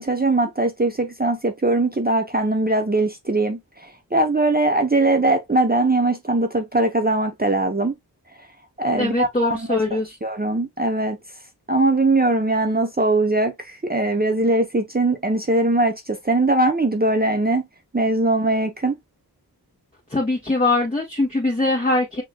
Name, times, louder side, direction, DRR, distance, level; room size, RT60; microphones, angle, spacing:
voice 1, 0.0-7.9 8.8-11.2 11.7-17.6 17.9-19.0, right 2 dB, 25° right, 0.8 m, -21 dB
voice 2, 9.0-10.1 20.1-22.2, left 2 dB, 15° left, 1.9 m, -22 dB
6.2 x 3.1 x 2.3 m
wide cardioid pair, 60°, 41 cm